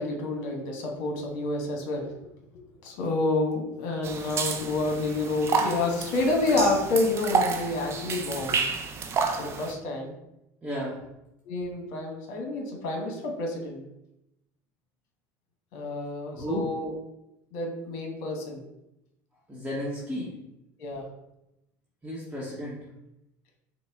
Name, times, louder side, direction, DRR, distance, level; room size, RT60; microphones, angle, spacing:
voice 1, 0.0-2.1 2.8-8.6 9.4-10.1 11.4-13.8 15.7-16.9 17.5-18.6 20.8-21.1, left 2 dB, 70° left, 1 dB, 1.1 m, -29 dB
sound 1, 4.0-9.7, right 5 dB, 35° right, 0.5 m, -30 dB
voice 2, 10.6-11.0 16.3-16.6 19.5-20.3 22.0-22.8, equal, 15° right, -7 dB, 0.9 m, -33 dB
5.2 x 2.1 x 3.5 m, 0.87 s
supercardioid pair, 115°, 8 cm